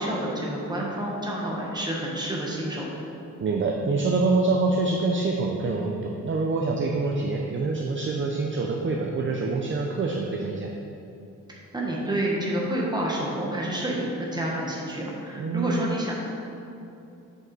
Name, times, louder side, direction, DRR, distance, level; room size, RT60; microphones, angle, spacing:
voice 1, 0.0-3.0 11.5-16.1, right 1 dB, 10° right, -4 dB, 1.0 m, -29 dB
voice 2, 3.4-10.7 15.4-15.7, right 3 dB, 40° right, 0 dB, 0.5 m, -25 dB
7.7 x 5.3 x 4.0 m, 2.7 s
wide cardioid pair, 180°, 33 cm